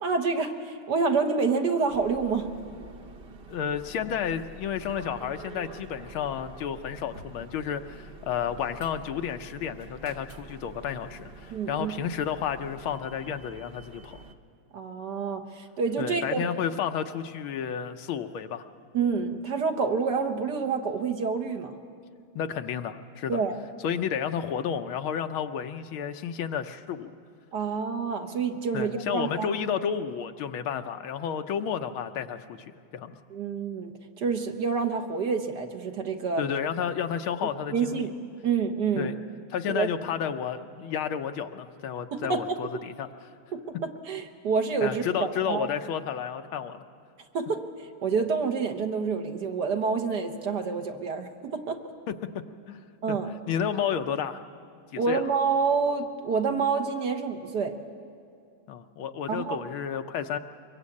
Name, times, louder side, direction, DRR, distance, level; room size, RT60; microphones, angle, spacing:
voice 1, 0.0-2.5 11.5-11.9 14.7-16.5 18.9-21.8 23.3-23.6 27.5-29.5 33.3-36.4 37.7-38.1 38.4-39.1 39.7-39.9 42.1-42.6 43.5-45.7 47.3-51.8 53.0-53.3 55.0-57.7 59.3-59.6, right 5 dB, 55° right, 5 dB, 1.6 m, -28 dB
sound 1, 1.9-14.4, right 3 dB, 40° right, 0.9 m, -47 dB
voice 2, 3.5-14.2 16.0-18.6 22.3-23.4 23.8-27.1 28.7-32.6 32.9-33.2 36.4-38.1 39.0-39.1 39.5-43.1 44.8-46.8 52.1-52.2 52.7-53.2 53.5-54.4 54.9-55.2 58.7-60.4, left 8 dB, 75° left, 8 dB, 1.7 m, -31 dB
23.5 x 22.5 x 8.5 m, 2.3 s
omnidirectional pair, 2.4 m